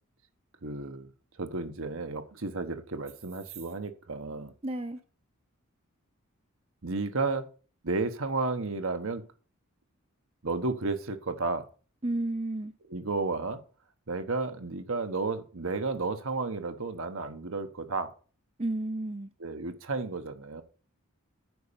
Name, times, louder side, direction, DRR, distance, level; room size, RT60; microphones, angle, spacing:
voice 1, 0.6-1.1 1.4-4.5 6.8-7.5 7.8-9.2 10.4-11.6 12.9-13.6 14.1-18.1 19.4-20.6, right 3 dB, 65° right, 1.1 m, -32 dB
voice 2, 4.6-5.0 12.0-12.7 18.6-19.3, right 2 dB, 25° right, 0.6 m, -32 dB
9.4 x 5.5 x 7.0 m
head